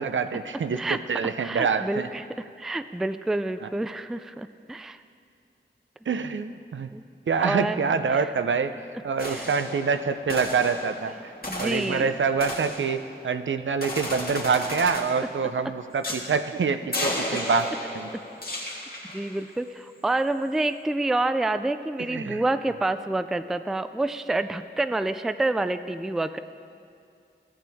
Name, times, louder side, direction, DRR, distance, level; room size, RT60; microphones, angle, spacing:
voice 1, 0.0-2.1 3.6-3.7 6.1-6.9 7.3-8.8 9.0-18.1 22.1-22.4, right 5 dB, 70° right, 10 dB, 0.5 m, -26 dB
voice 2, 1.4-2.2 2.6-5.0 6.9-7.0 7.4-7.8 8.1-8.2 9.2-9.5 11.5-12.1 19.1-26.4, right 2 dB, ahead, 11 dB, 0.3 m, -28 dB
sound 1, 9.2-13.4 13.8-15.3 16.0-16.3 16.9-19.4, left 1 dB, 50° left, 1.8 m, -34 dB
14.0 x 8.6 x 3.5 m, 2.4 s
cardioid pair, 45°, 20 cm